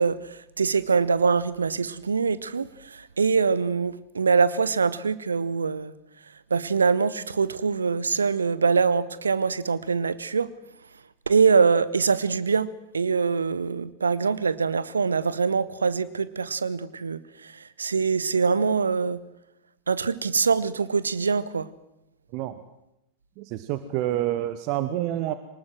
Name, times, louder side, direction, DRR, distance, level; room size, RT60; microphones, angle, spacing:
voice 1, 0.0-5.9 6.5-10.5 11.3-12.7 12.9-19.2 19.9-21.7, right 5 dB, 75° right, 17 dB, 1.0 m, -24 dB
voice 2, 23.4-25.3, right 13 dB, 45° right, 12 dB, 1.2 m, -28 dB
23.5 x 19.5 x 7.8 m, 0.86 s
figure-of-eight pair, 90°, 0 cm